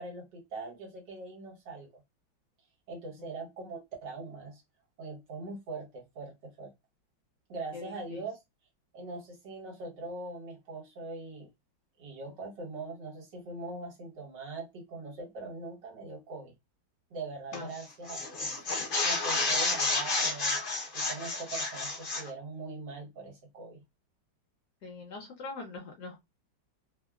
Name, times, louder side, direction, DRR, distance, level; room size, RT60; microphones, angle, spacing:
voice 1, 0.0-2.0 2.9-4.6 5.0-6.7 7.5-8.4 8.9-11.5 12.0-16.5 17.1-18.6 19.0-20.6 20.9-23.8, right 3 dB, 65° right, 1.7 m, -42 dB
voice 2, 7.7-8.2 17.5-17.7 19.5-19.6 24.8-26.2, left 4 dB, 65° left, 1.2 m, -43 dB
sound 1, 17.5-17.8 18.1-22.3, left 3 dB, 90° left, 0.4 m, -30 dB
3.5 x 2.1 x 2.3 m
omnidirectional pair, 2.1 m